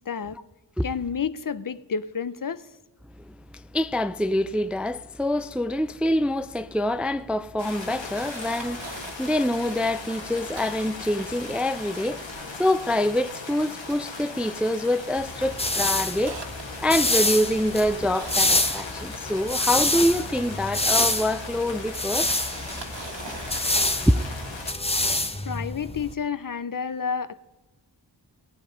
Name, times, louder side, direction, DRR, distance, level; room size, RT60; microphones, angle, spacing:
voice 1, 0.1-0.4 0.8-2.7 25.4-27.4, left 6 dB, 50° left, 0.6 m, -30 dB
voice 2, 3.2-12.3 12.6-16.4 16.8-22.3 24.0-24.2, left 1 dB, 5° right, 0.4 m, -25 dB
sound 1, 7.6-24.7, left 3 dB, 80° left, 2.1 m, -38 dB
Camera, 8.1-9.1 9.7-9.9 10.1-11.7 12.1-13.3 13.7-14.9 15.1-15.4 15.8-19.9 21.0-21.1 22.0-23.8 24.4-24.5, right 4 dB, 70° right, 1.8 m, -42 dB
sound 2, 15.2-26.1, left 2 dB, 15° left, 0.9 m, -27 dB
16.0 x 8.6 x 5.1 m
cardioid pair, 50°, 45 cm